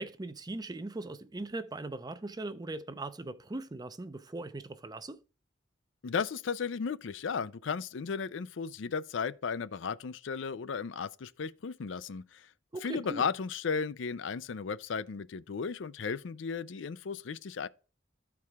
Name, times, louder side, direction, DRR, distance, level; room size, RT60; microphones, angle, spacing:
voice 1, 0.0-5.2 12.7-13.3, right 2 dB, 20° right, 0.5 m, -40 dB
voice 2, 6.0-12.5 12.8-17.7, left 5 dB, 75° left, 0.5 m, -35 dB
13.0 x 4.7 x 3.5 m
head